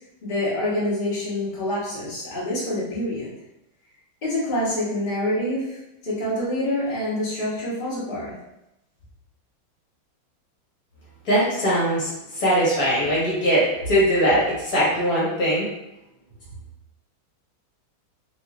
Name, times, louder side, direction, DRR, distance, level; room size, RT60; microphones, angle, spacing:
voice 1, 0.2-3.3 4.2-8.3, left 1 dB, 40° left, -8 dB, 0.7 m, -26 dB
voice 2, 11.2-15.7, equal, 55° left, -7 dB, 1.3 m, -21 dB
3.2 x 3.0 x 2.2 m, 0.89 s
omnidirectional pair, 2.2 m